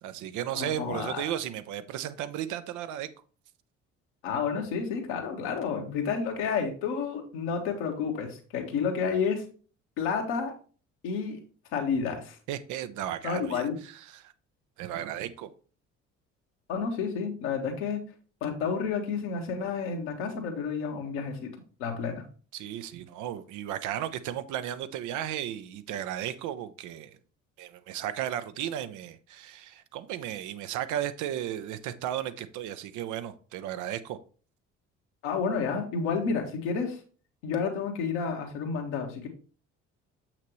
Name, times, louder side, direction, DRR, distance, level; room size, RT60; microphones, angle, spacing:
voice 1, 0.0-3.1 12.5-14.3 14.8-15.5 22.5-27.2 27.6-34.2, right 11 dB, 55° right, 0.8 m, -35 dB
voice 2, 0.5-1.2 4.2-9.4 10.0-10.5 11.0-11.4 11.7-12.4 13.2-13.7 16.7-18.0 18.4-21.5 21.8-22.2 35.2-37.0 37.4-39.3, left 5 dB, 65° left, 1.7 m, -30 dB
7.7 x 5.9 x 3.1 m
figure-of-eight pair, 50°, 37 cm